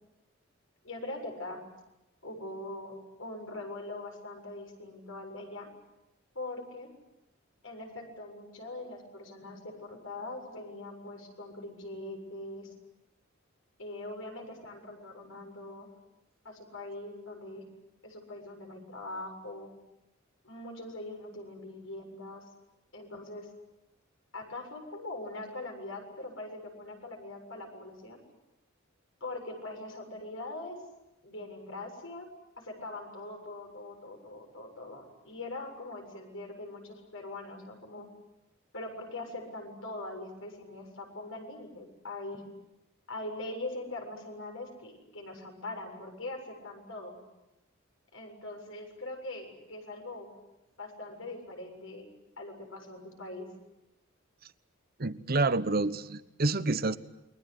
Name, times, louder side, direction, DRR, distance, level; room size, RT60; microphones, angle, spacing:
voice 1, 0.8-1.6 2.2-5.7 6.3-6.9 7.6-12.7 13.8-15.9 16.4-17.7 18.0-19.7 20.4-22.5 22.9-23.5 24.3-28.2 29.2-30.8 31.2-32.3 32.6-38.1 38.7-42.4 43.1-47.2 48.1-50.3 50.8-52.1 52.4-53.5, left 2 dB, 80° left, 3 dB, 7.2 m, -42 dB
voice 2, 55.0-57.0, right 2 dB, 50° right, 13 dB, 1.1 m, -28 dB
29.0 x 23.0 x 8.2 m, 0.93 s
head